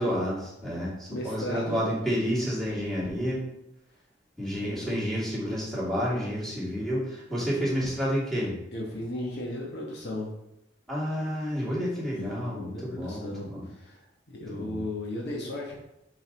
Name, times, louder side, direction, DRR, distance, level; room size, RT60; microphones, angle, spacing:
voice 1, 0.0-3.4 4.4-8.5 10.9-13.7 14.5-14.8, equal, ahead, -9 dB, 2.5 m, -30 dB
voice 2, 1.1-1.9 4.6-5.0 8.7-10.3 12.1-15.8, left 1 dB, 55° left, -2 dB, 1.2 m, -36 dB
7.7 x 4.1 x 4.0 m, 0.86 s
head